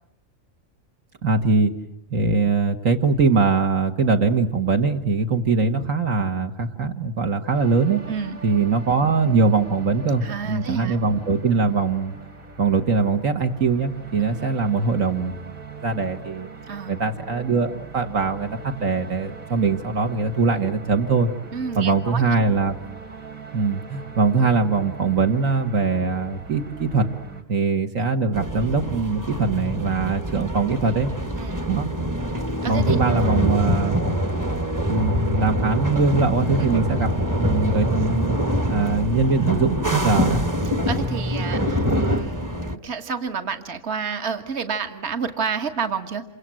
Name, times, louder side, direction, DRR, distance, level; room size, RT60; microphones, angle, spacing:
voice 1, 1.2-1.7 2.1-8.0 8.4-12.1 12.6-15.5 15.8-16.5 16.9-21.3 21.8-22.8 23.5-27.1 27.5-31.1 31.7-31.9 32.7-34.1 34.9-37.1 37.4-38.4 38.7-40.4, right 4 dB, 70° right, 4 dB, 2.0 m, -22 dB
sound 1, 7.5-27.4, right 5 dB, 90° right, 3.1 m, -40 dB
voice 2, 10.2-11.0 16.7-17.0 21.5-22.2 31.4-31.6 32.6-33.1 40.9-46.3, right 5 dB, 50° right, 7 dB, 1.9 m, -30 dB
sound 2, 28.3-42.8, equal, 15° right, 0.9 m, -24 dB
28.0 x 25.0 x 7.6 m, 0.75 s
omnidirectional pair, 1.4 m